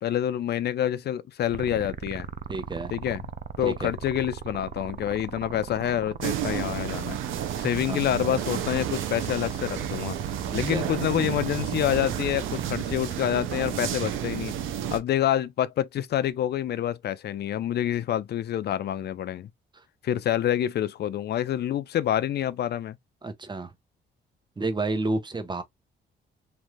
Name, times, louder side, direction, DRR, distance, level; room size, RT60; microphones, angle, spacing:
voice 1, 0.0-2.3 2.9-3.3 3.6-7.2 7.6-10.2 10.5-14.5 14.9-19.5 20.0-23.0, left 11 dB, 55° left, 0.5 m, -27 dB
sound 1, 1.5-12.7, right 8 dB, 40° right, 0.4 m, -38 dB
voice 2, 2.5-2.9 3.6-3.9 7.9-8.0 10.5-10.8 19.7-19.8 23.2-23.7 24.6-25.6, right 3 dB, 20° right, 0.9 m, -30 dB
sound 2, 6.2-15.0, right 10 dB, 80° right, 0.7 m, -31 dB
3.3 x 2.6 x 2.2 m
cardioid pair, 90°, 20 cm